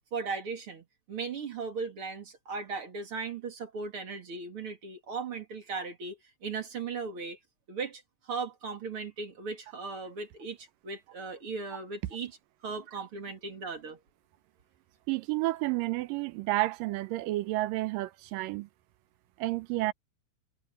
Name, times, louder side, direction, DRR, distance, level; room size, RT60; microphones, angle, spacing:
voice 1, 0.1-7.4 7.7-12.4 12.6-14.0, right 4 dB, 40° right, 3.2 m, -37 dB
voice 2, 15.1-18.7 19.4-19.9, right 18 dB, 85° right, 2.4 m, -30 dB
omnidirectional pair, 3.9 m